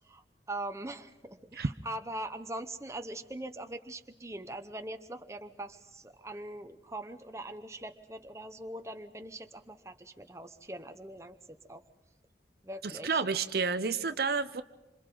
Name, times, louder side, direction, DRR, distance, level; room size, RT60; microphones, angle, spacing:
voice 1, 0.5-11.8 12.6-13.2, right 1 dB, 15° right, 7 dB, 0.9 m, -42 dB
voice 2, 12.8-14.6, right 5 dB, 55° right, 11 dB, 0.7 m, -30 dB
27.0 x 26.5 x 3.9 m, 1.1 s
head